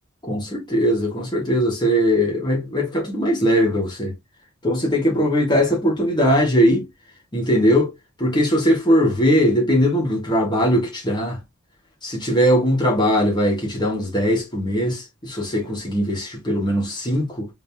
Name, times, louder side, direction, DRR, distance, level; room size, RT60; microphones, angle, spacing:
voice 1, 0.2-4.1 4.6-6.8 7.3-7.9 8.2-11.4 12.0-17.5, equal, 20° left, 1.7 m, -20 dB
4.0 x 3.5 x 2.7 m
head